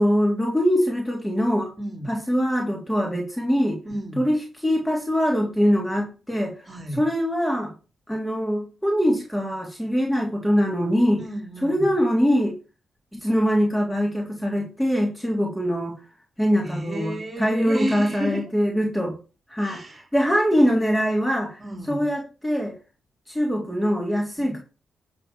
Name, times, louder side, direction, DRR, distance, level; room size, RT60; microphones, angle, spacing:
voice 1, 0.0-1.7 2.1-3.8 4.2-6.5 6.9-7.7 8.1-11.2 11.6-12.5 13.1-15.9 16.4-19.2 19.5-21.6 21.9-22.8 23.3-24.6, equal, 5° left, 0 dB, 3.4 m, -23 dB
voice 2, 1.8-2.1 3.8-4.2 6.7-7.1 11.2-11.9 16.6-18.4 19.6-20.1 21.6-22.1 24.4-24.6, right 1 dB, 30° right, 4 dB, 3.9 m, -32 dB
10.0 x 4.5 x 7.3 m, 0.33 s
supercardioid pair, 45°, 0 cm